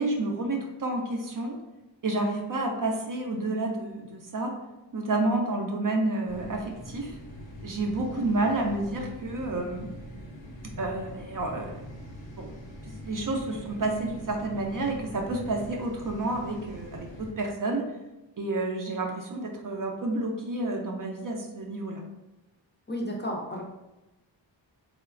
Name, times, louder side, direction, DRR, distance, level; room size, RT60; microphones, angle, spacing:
voice 1, 0.0-1.6 2.0-4.5 4.9-7.2 7.6-9.9 10.8-11.7 12.4-12.5 12.8-17.9 18.4-22.0, right 2 dB, 45° right, 1 dB, 0.5 m, -30 dB
sound 1, 6.3-17.3, equal, 85° left, 0.7 m, -43 dB
voice 2, 22.9-23.6, equal, 25° left, -1 dB, 0.4 m, -32 dB
3.0 x 2.1 x 2.4 m, 0.99 s
wide cardioid pair, 65°, 45 cm